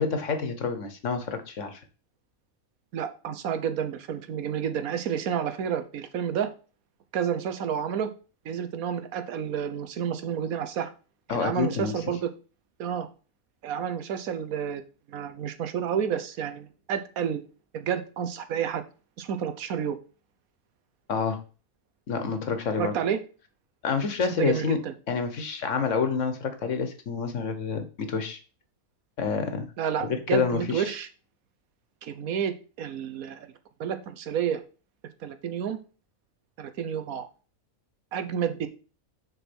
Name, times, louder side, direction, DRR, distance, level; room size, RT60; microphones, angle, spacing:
voice 1, 0.0-1.8 11.3-11.9 21.1-21.4 22.1-22.9 23.8-24.8 25.1-28.4 29.2-29.7 30.0-30.9, left 5 dB, 65° left, 8 dB, 1.5 m, -28 dB
voice 2, 2.9-6.5 7.1-8.1 8.4-10.9 11.3-12.3 12.8-13.1 13.6-14.8 15.1-17.4 17.7-18.8 19.2-20.0 22.8-23.2 24.4-24.9 29.8-31.1 32.0-33.5 33.8-34.6 35.2-35.8 36.6-37.3 38.1-38.7, right 8 dB, 90° right, 10 dB, 1.3 m, -30 dB
6.7 x 4.5 x 6.1 m, 0.36 s
omnidirectional pair, 1.4 m